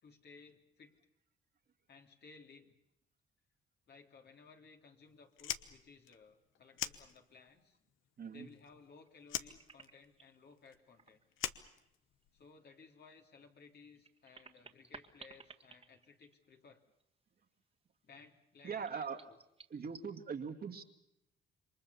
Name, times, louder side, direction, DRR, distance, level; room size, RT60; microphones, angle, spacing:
voice 1, 0.0-0.9 1.9-2.7 3.9-7.8 8.3-11.2 12.3-16.8 18.0-19.4, left 4 dB, 55° left, 3 dB, 3.1 m, -59 dB
Fire, 5.3-7.6 7.9-8.9 9.2-12.4, left 11 dB, 85° left, 1.1 m, -43 dB
voice 2, 8.2-8.5 18.6-19.2 19.7-20.8, right 6 dB, 50° right, 4 dB, 2.2 m, -41 dB
sound 1, 9.1-10.4 10.8-11.9 12.2-12.3 13.7-16.7 17.0-17.1 18.8-20.2, right 4 dB, 30° right, 1.9 m, -57 dB
28.0 x 23.5 x 7.0 m, 0.82 s
cardioid pair, 90°, 20 cm